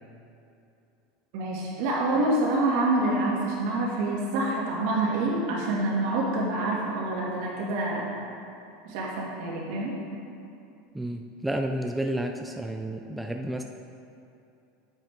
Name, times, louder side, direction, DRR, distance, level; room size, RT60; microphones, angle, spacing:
voice 1, 1.3-8.1 8.8-9.9, right 2 dB, 65° right, -4 dB, 2.2 m, -27 dB
voice 2, 10.9-13.6, right 1 dB, 5° right, 4 dB, 0.3 m, -31 dB
9.3 x 7.5 x 3.7 m, 2.7 s
supercardioid pair, 145°, 0 cm